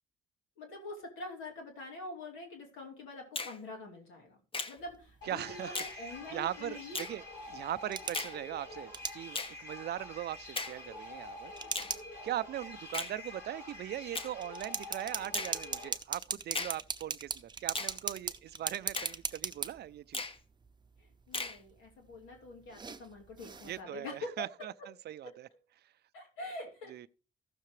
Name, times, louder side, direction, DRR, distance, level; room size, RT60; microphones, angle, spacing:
voice 1, 0.6-4.4 4.7-7.0 21.0-24.7 25.2-25.3 26.1-27.1, left 2 dB, 90° left, 2.8 m, -45 dB
Finger snapping, 3.4-3.6 4.5-4.8 5.8-6.0 6.9-7.2 8.1-8.4 9.3-9.6 10.6-10.8 11.8-12.0 12.9-13.2 14.1-14.3 15.3-15.6 16.5-16.8 17.7-18.0 19.0-19.2 20.1-20.4 21.3-21.6, left 3 dB, 25° left, 1.0 m, -37 dB
sound 1, 4.8-23.8, right 4 dB, 20° right, 0.7 m, -42 dB
sound 2, 5.2-15.9, left 2 dB, 70° left, 5.3 m, -47 dB
voice 2, 5.3-11.5 12.2-20.2 23.6-24.7 25.1-25.5 26.9-27.1, right 12 dB, 55° right, 0.4 m, -40 dB
15.0 x 6.6 x 3.2 m
cardioid pair, 90°, 20 cm